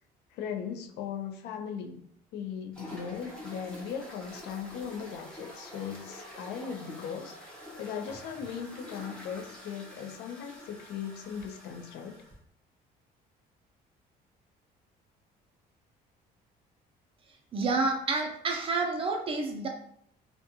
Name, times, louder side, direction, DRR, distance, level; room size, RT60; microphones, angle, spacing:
voice 1, 0.3-2.1 2.3-7.3 7.8-12.2, left 7 dB, 75° left, 5 dB, 0.4 m, -38 dB
sound 1, 2.7-12.4, left 1 dB, 5° left, 0.7 m, -47 dB
voice 2, 17.5-19.7, right 3 dB, 35° right, 2 dB, 0.5 m, -29 dB
2.4 x 2.2 x 2.7 m, 0.67 s
cardioid pair, 110°, 17 cm